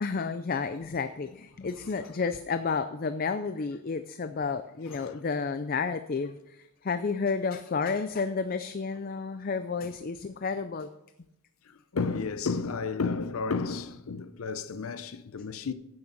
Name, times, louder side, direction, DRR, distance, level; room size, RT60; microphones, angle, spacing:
voice 1, 0.0-10.9, left 4 dB, 45° left, 0.4 m, -31 dB
voice 2, 4.8-5.2 11.6-15.7, left 4 dB, 85° left, 0.6 m, -32 dB
10.5 x 8.6 x 5.4 m
head